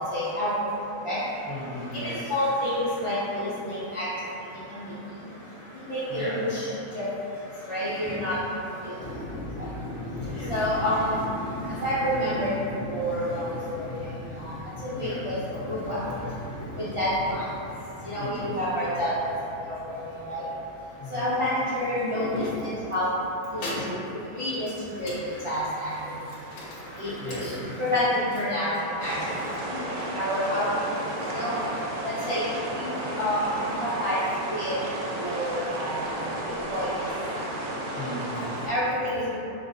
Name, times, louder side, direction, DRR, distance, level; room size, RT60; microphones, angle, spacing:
voice 1, 0.1-0.5 1.0-1.2 1.9-4.0 4.7-4.9 5.9-6.7 6.9-7.0 7.7-8.3 8.8-8.9 10.5-11.2 11.8-12.5 12.9-13.8 14.4-14.5 14.8-15.4 15.7-16.0 16.8-17.4 18.0-19.3 19.6-19.9 20.3-20.4 21.1-22.4 22.9-23.0 23.5-24.7 25.0-25.1 25.4-25.9 27.0-28.7 29.0-29.1 29.7-29.8 30.1-30.7 31.3-31.5 32.0-32.4 32.7-34.2 34.5-34.7 35.2-35.9 36.7-36.9 38.7-39.4, left 1 dB, 45° right, -12 dB, 0.4 m, -28 dB
voice 2, 1.5-2.3 6.1-6.4 10.2-10.6 14.9-15.2 18.2-18.5 21.0-21.3 27.2-27.6 37.9-38.5, left 1 dB, 45° left, -11 dB, 1.3 m, -36 dB
sound 1, 9.0-28.4, left 1 dB, 65° left, 1.0 m, -38 dB
sound 2, 29.0-38.7, right 1 dB, 65° right, 0.9 m, -33 dB
5.2 x 2.6 x 2.6 m, 2.9 s
omnidirectional pair, 1.6 m